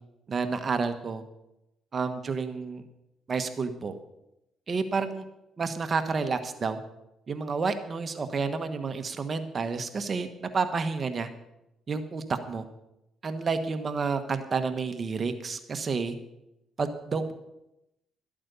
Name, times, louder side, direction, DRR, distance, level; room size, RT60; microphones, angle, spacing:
voice 1, 0.3-1.2 1.9-2.8 3.3-3.9 4.7-5.2 5.6-6.8 7.3-11.3 11.9-12.6 13.2-16.1 16.8-17.3, right 4 dB, 40° right, 8 dB, 1.3 m, -30 dB
13.0 x 8.7 x 6.9 m, 0.87 s
cardioid pair, 90°, 0 cm